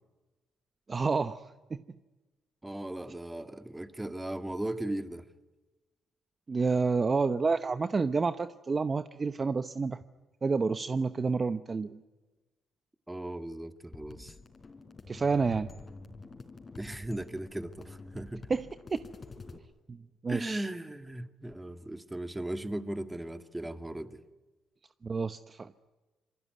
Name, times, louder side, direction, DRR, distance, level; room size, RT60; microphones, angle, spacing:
voice 1, 0.9-1.4 1.7-1.8 6.5-10.0 10.4-12.0 15.1-15.7 18.5-18.7 19.9-20.7 25.0-25.7, right 4 dB, 35° right, 11 dB, 0.9 m, -29 dB
voice 2, 2.6-5.3 13.1-14.4 16.8-18.5 20.3-24.2, right 1 dB, 10° right, 9 dB, 1.8 m, -37 dB
sound 1, 13.9-19.6, left 3 dB, 35° left, 4.2 m, -48 dB
27.0 x 23.5 x 9.4 m, 1.2 s
cardioid pair, 90°, 0 cm